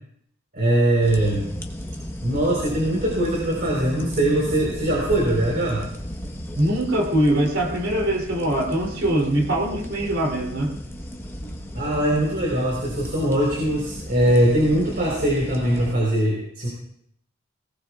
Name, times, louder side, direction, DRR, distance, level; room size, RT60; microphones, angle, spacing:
voice 1, 0.5-1.5 2.2-5.8 11.7-16.7, right 1 dB, 50° right, -4 dB, 4.3 m, -21 dB
sound 1, 1.0-15.9, equal, 15° left, 1.3 m, -34 dB
voice 2, 6.6-10.8, right 1 dB, 80° right, 1 dB, 3.2 m, -22 dB
19.5 x 18.5 x 2.4 m, 0.69 s
head